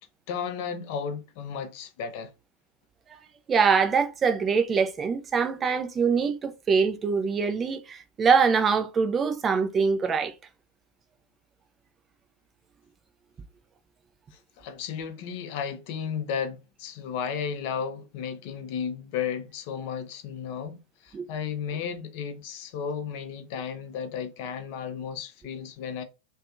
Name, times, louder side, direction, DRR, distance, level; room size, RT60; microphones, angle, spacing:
voice 1, 0.3-2.3 14.3-26.0, left 7 dB, 45° left, 0.5 m, -34 dB
voice 2, 3.5-10.3 21.1-21.3, right 5 dB, 20° right, 0.4 m, -24 dB
2.6 x 2.3 x 2.4 m
figure-of-eight pair, 90°, 0 cm